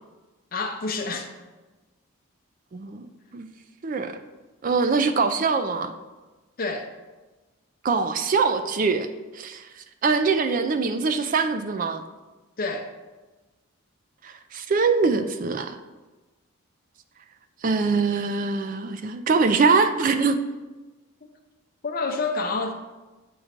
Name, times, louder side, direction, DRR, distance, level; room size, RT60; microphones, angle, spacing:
voice 1, 0.5-1.3 6.6-6.9 12.6-12.9 21.8-22.7, left 3 dB, 40° left, 4 dB, 0.6 m, -28 dB
voice 2, 2.7-3.1 3.3-3.5 3.8-4.2 4.6-5.9 7.8-9.1 9.3-9.7 10.0-12.0 14.2-15.8 17.6-20.4, right 4 dB, 40° right, 9 dB, 0.3 m, -23 dB
7.6 x 3.1 x 5.0 m, 1.2 s
head